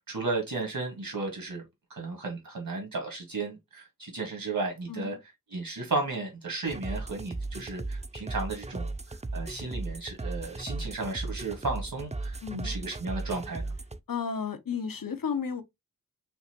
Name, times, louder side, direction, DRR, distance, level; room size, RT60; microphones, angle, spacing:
voice 1, 0.1-1.6 1.9-5.2 5.5-13.7, right 3 dB, 80° right, 1.7 m, -34 dB
sound 1, 6.7-14.0, right 2 dB, 20° right, 0.5 m, -36 dB
voice 2, 12.4-12.7 14.1-15.6, left 6 dB, 80° left, 0.9 m, -33 dB
5.6 x 2.9 x 2.9 m
wide cardioid pair, 60°, 34 cm